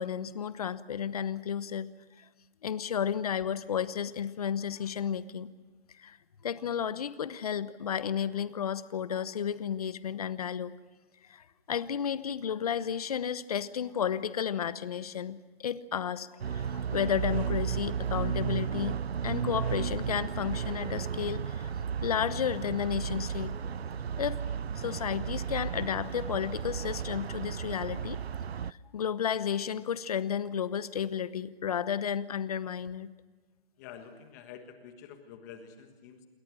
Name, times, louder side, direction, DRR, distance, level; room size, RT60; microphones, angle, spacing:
voice 1, 0.0-1.9 2.6-5.5 6.0-6.2 6.4-10.7 11.3-21.7 22.0-23.5 24.2-24.4 24.8-28.2 28.7-33.1, left 8 dB, 35° left, 15 dB, 1.0 m, -32 dB
sound 1, 16.4-28.7, right 7 dB, 80° right, 0.7 m, -34 dB
voice 2, 33.8-36.3, left 7 dB, 15° left, 7 dB, 1.5 m, -48 dB
28.0 x 22.0 x 6.2 m, 1.3 s
hypercardioid pair, 165°, 31 cm